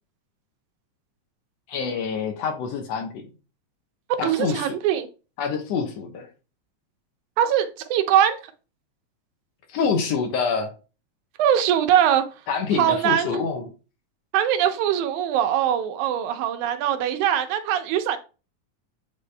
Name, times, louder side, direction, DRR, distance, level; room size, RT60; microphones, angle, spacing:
voice 1, 1.7-3.3 4.2-4.7 5.4-6.3 9.7-10.7 12.5-13.7, left 5 dB, 70° left, 1.8 m, -26 dB
voice 2, 4.2-5.1 7.4-8.4 11.4-12.2 12.7-13.3 14.3-18.2, right 10 dB, 80° right, 2.1 m, -22 dB
8.5 x 3.4 x 3.3 m
omnidirectional pair, 3.4 m